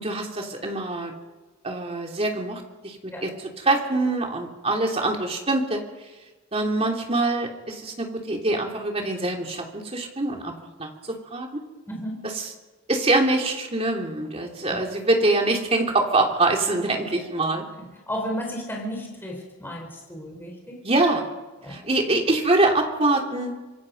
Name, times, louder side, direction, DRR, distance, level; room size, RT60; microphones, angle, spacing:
voice 1, 0.0-1.1 1.6-3.3 3.6-5.8 6.5-10.5 10.8-11.6 12.9-17.6 20.8-21.3 21.7-23.5, right 2 dB, 30° right, 2 dB, 2.9 m, -24 dB
voice 2, 11.9-12.3 14.7-14.8 17.5-20.8 21.6-21.8, equal, 10° left, -1 dB, 4.4 m, -34 dB
26.0 x 22.5 x 5.4 m, 1.2 s
head